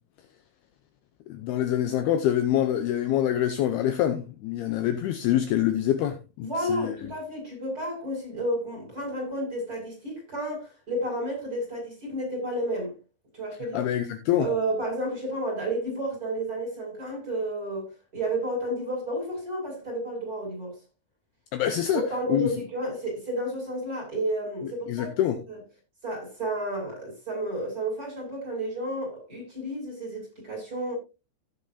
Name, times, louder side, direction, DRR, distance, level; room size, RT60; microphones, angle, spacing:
voice 1, 1.3-7.0 13.7-14.5 21.5-22.0 22.3-22.5 24.9-25.4, left 11 dB, 85° left, 2.3 m, -25 dB
voice 2, 6.4-12.9 13.3-13.8 14.4-20.7 21.9-25.1 25.5-25.6 26.0-31.0, right 1 dB, 20° right, 6.5 m, -31 dB
16.5 x 7.5 x 2.8 m
omnidirectional pair, 5.6 m